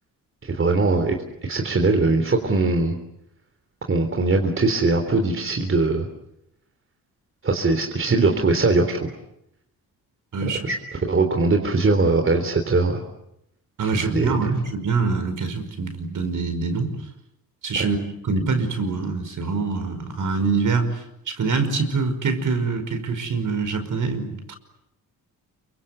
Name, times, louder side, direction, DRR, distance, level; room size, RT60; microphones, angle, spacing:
voice 1, 0.4-1.2 1.4-2.9 3.9-6.1 7.4-9.1 10.4-13.0 14.0-14.4 17.8-17.9, right 3 dB, 35° right, 4 dB, 3.5 m, -21 dB
voice 2, 13.8-16.9 17.6-24.6, right 4 dB, 55° right, 8 dB, 5.4 m, -25 dB
28.0 x 24.5 x 8.2 m, 0.82 s
cardioid pair, 95°, 37 cm